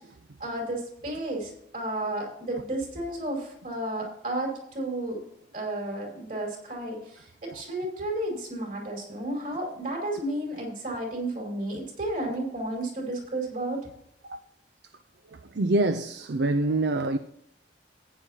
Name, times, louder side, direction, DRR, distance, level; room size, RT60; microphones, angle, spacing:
voice 1, 0.4-5.2 5.5-13.8, right 1 dB, 50° right, 5.0 m, -32 dB
voice 2, 15.5-17.2, right 2 dB, 70° right, 0.5 m, -25 dB
15.0 x 10.0 x 2.9 m
head